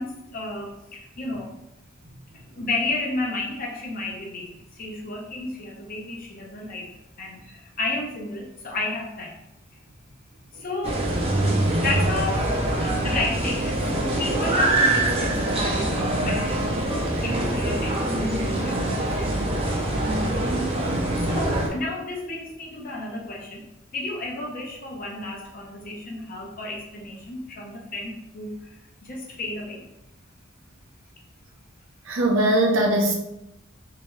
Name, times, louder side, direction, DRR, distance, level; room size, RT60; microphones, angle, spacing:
voice 1, 0.0-1.5 2.6-6.9 7.2-9.3 10.5-11.0 11.8-12.5 12.8-16.8 17.2-18.8 19.2-19.8 21.3-23.7 23.9-29.8, left 2 dB, 45° left, -1 dB, 0.7 m, -32 dB
sound 1, 10.8-21.7, right 1 dB, 30° right, 0.6 m, -24 dB
voice 2, 32.1-33.2, right 1 dB, 80° right, 1 dB, 0.7 m, -20 dB
3.4 x 2.9 x 3.1 m, 0.87 s
head